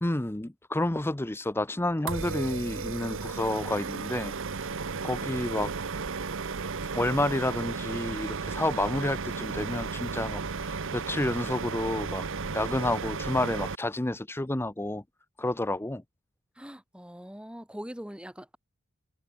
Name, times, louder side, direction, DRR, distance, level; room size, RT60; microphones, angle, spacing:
voice 1, 0.0-4.8 5.0-5.7 6.9-12.3 12.5-15.0 15.4-16.0, left 1 dB, 10° left, 0.7 m, -30 dB
sound 1, 2.1-13.7, right 4 dB, 65° right, 1.0 m, -34 dB
voice 2, 16.6-18.6, equal, 5° right, 2.4 m, -42 dB
head